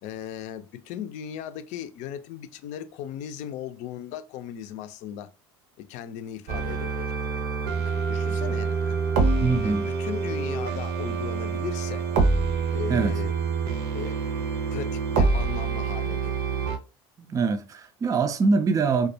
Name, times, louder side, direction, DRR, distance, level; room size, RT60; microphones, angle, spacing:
voice 1, 0.0-5.3 5.8-7.1 7.3-7.4 7.8-9.0 9.6-12.1 12.7-13.3 13.9-14.2 14.7-16.3, left 10 dB, 60° left, 0.5 m, -37 dB
sound 1, 6.5-16.8, right 4 dB, 65° right, 0.7 m, -26 dB
voice 2, 9.4-9.9 12.9-13.2 17.2-19.1, right 4 dB, 25° right, 0.4 m, -23 dB
2.3 x 2.1 x 2.7 m
hypercardioid pair, 80°, 14 cm